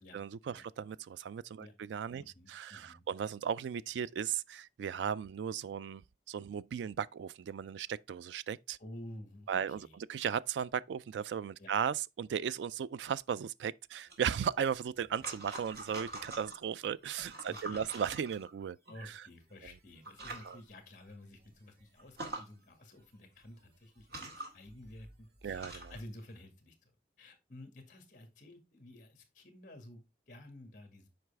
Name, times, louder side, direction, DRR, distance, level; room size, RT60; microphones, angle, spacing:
voice 1, 0.0-2.2 2.5-8.8 9.5-18.8 19.0-19.2 20.4-20.6 25.4-25.9, right 8 dB, 85° right, 0.3 m, -36 dB
voice 2, 2.2-3.0 8.8-10.0 11.6-11.7 17.5-17.9 18.9-26.9 27.2-31.1, left 1 dB, 45° left, 1.8 m, -52 dB
sound 1, 14.1-16.6 17.1-18.9 19.6-19.8 20.0-20.6 21.0-21.1 21.4-21.5 22.0-22.5 23.4-23.5 24.0-26.1, right 2 dB, 65° right, 1.9 m, -45 dB
7.9 x 4.8 x 3.4 m
head